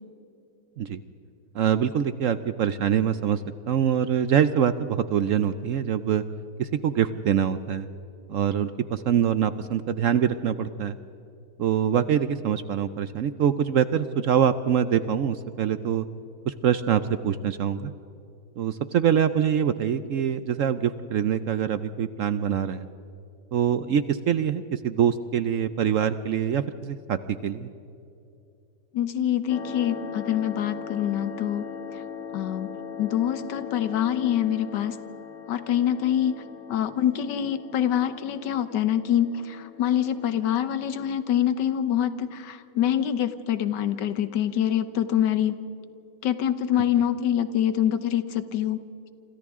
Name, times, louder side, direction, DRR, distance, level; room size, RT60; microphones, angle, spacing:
voice 1, 1.5-3.4 3.7-6.2 6.6-7.9 8.3-11.0 11.6-16.1 16.5-17.9 18.6-22.9 23.5-27.7, right 8 dB, 65° right, 12 dB, 0.8 m, -24 dB
voice 2, 28.9-31.7 32.3-32.7 33.0-35.0 35.5-36.4 36.7-45.6 46.2-48.8, left 10 dB, 85° left, 12 dB, 1.6 m, -25 dB
sound 1, 29.5-40.3, left 7 dB, 50° left, 1.4 m, -39 dB
28.0 x 26.5 x 3.7 m, 2.8 s
omnidirectional pair, 1.9 m